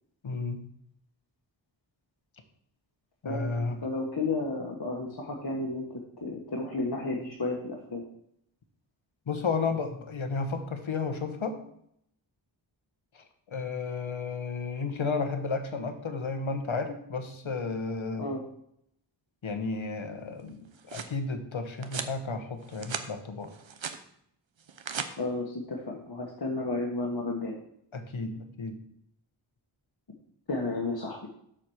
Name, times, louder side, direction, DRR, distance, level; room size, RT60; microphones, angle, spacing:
voice 1, 0.2-0.6 3.2-3.8 9.3-11.6 13.1-18.3 19.4-23.5 27.9-28.8, left 4 dB, 80° left, 7 dB, 1.2 m, -33 dB
voice 2, 3.3-8.0 18.2-18.4 25.2-27.5 30.5-31.3, left 2 dB, 55° left, -2 dB, 1.6 m, -32 dB
sound 1, 20.5-21.2 21.8-22.2 22.6-23.1 23.4-24.0 24.6-25.1, right 6 dB, 70° right, 0.8 m, -37 dB
7.4 x 5.1 x 6.4 m, 0.71 s
wide cardioid pair, 55°, 47 cm